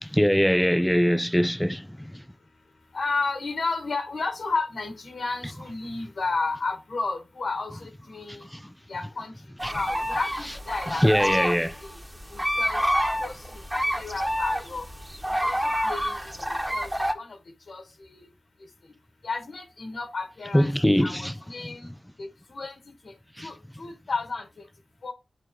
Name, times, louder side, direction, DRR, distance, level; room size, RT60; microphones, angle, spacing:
voice 1, 0.0-2.2 8.3-8.7 9.6-9.8 10.4-10.5 10.9-11.8 20.5-21.8 23.4-23.5, equal, 5° left, 0.5 m, -23 dB
voice 2, 2.9-8.5 8.9-9.3 9.7-11.9 12.3-12.8 13.2-13.4 13.7-14.8 15.4-15.6 15.8-16.3 16.7-16.9 17.1-17.4 17.7-17.8 18.1-18.3 19.2-20.7 21.0-21.9 22.2-22.8 23.0-23.1 23.4-24.5 25.0-25.1, left 3 dB, 75° left, 1.5 m, -32 dB
sound 1, 9.6-17.1, equal, 10° right, 1.8 m, -28 dB
12.5 x 4.4 x 3.1 m
cardioid pair, 45°, 0 cm